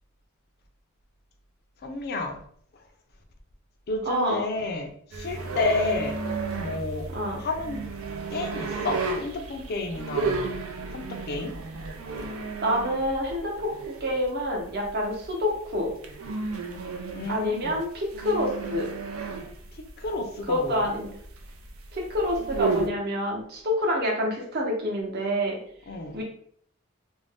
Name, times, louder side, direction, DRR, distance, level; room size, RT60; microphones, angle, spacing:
voice 1, 1.8-2.4 2.7-2.9 3.9-6.2 6.6-7.1 7.3-7.9 8.3-10.5 10.9-11.5 17.1-17.8 19.7-20.9 25.9-26.2, left 2 dB, 50° left, 5 dB, 0.4 m, -31 dB
voice 2, 4.1-4.4 7.1-7.4 12.6-13.5 14.0-15.9 17.3-18.9 20.5-21.1 21.9-25.6 26.1-26.2, equal, 50° right, 0 dB, 0.8 m, -27 dB
sound 1, 5.1-22.9, right 4 dB, 90° right, 0.5 m, -33 dB
2.5 x 2.1 x 3.3 m, 0.63 s
head